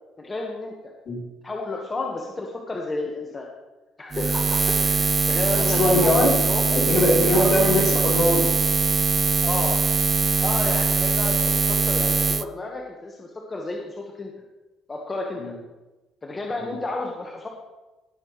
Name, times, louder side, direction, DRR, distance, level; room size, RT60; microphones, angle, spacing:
voice 1, 0.2-0.9 1.4-3.5 4.0-6.6 7.3-7.5 9.4-9.8 10.4-14.3 14.9-15.5 16.2-17.5, left 2 dB, 25° left, 0 dB, 1.3 m, -32 dB
Buzz, 4.1-12.4, right 4 dB, 30° right, 0.4 m, -22 dB
voice 2, 5.6-6.4 6.7-8.5 15.4-15.5 16.6-16.7, left 1 dB, 50° left, -3 dB, 3.6 m, -21 dB
18.0 x 6.8 x 3.1 m, 1.1 s
cardioid pair, 85°, 0 cm